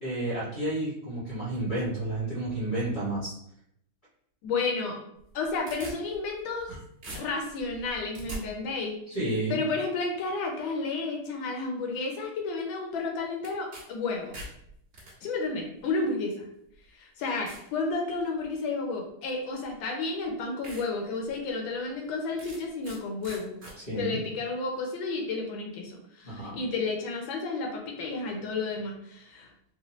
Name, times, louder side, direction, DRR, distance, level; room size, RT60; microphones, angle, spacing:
voice 1, 0.0-3.3 6.7-6.8 9.1-9.6 23.8-24.2 26.2-26.6, right 2 dB, 40° left, -8 dB, 0.7 m, -31 dB
voice 2, 4.4-5.0 5.3-6.7 7.1-9.0 9.5-14.3 15.2-16.5 16.9-23.5 24.0-29.5, left 3 dB, 75° left, 1 dB, 1.3 m, -31 dB
sound 1, 5.2-6.7 7.0-8.4 13.4-13.8 14.1-15.1 16.0-16.1 16.7-16.8 17.5-17.7 18.2-18.5 19.7-19.8 20.2-20.3 20.6-20.8 21.3-21.4 22.4-23.0 23.2-23.7, right 1 dB, 40° right, 1.5 m, -42 dB
4.0 x 2.2 x 2.9 m, 0.73 s
omnidirectional pair, 2.4 m